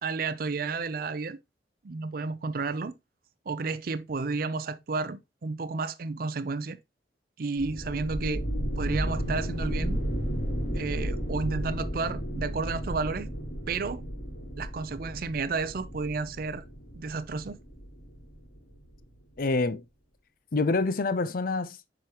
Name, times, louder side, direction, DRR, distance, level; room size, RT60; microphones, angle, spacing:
voice 1, 0.0-1.4 1.8-2.9 3.5-6.8 7.4-8.5 8.8-10.0 10.7-13.3 13.7-14.0 14.6-16.6 16.9-17.6, right 4 dB, 55° right, 0.5 m, -32 dB
sound 1, 7.6-19.0, equal, 70° left, 3.2 m, -33 dB
voice 2, 19.4-19.8 20.5-21.9, left 3 dB, 55° left, 0.6 m, -27 dB
7.6 x 5.1 x 2.9 m
head